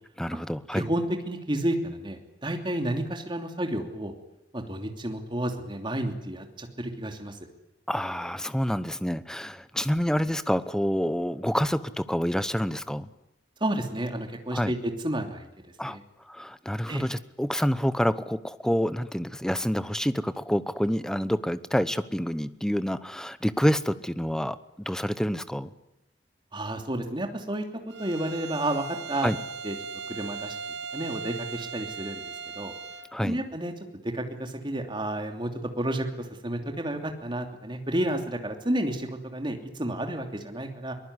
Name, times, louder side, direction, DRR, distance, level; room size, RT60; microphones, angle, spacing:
voice 1, 0.2-0.9 7.9-13.1 14.5-14.7 15.8-16.0 16.3-25.7 29.2-29.4 33.1-33.4, equal, 5° left, 14 dB, 0.9 m, -28 dB
voice 2, 0.7-4.1 4.5-7.4 13.6-15.5 15.9-16.0 16.9-17.0 26.5-27.6 28.0-29.3 29.6-29.7 30.1-30.5 30.9-32.2 32.5-32.7 33.2-33.7 34.0-40.9, right 1 dB, 25° right, 4 dB, 3.0 m, -31 dB
Bowed string instrument, 27.9-33.1, right 6 dB, 70° right, 1.4 m, -38 dB
22.5 x 20.0 x 9.7 m, 0.87 s
head